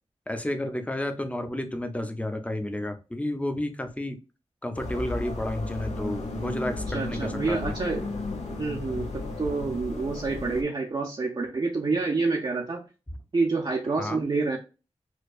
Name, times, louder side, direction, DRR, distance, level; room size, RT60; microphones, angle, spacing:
voice 1, 0.3-4.2 4.6-7.7 14.0-14.2, left 1 dB, 10° left, 7 dB, 0.6 m, -31 dB
sound 1, 4.7-10.6, left 2 dB, 80° left, 0.8 m, -34 dB
voice 2, 6.9-8.1 8.5-12.8 13.3-14.6, right 3 dB, 40° right, 0 dB, 0.5 m, -28 dB
4.5 x 2.2 x 2.4 m, 0.31 s
wide cardioid pair, 80°, 11 cm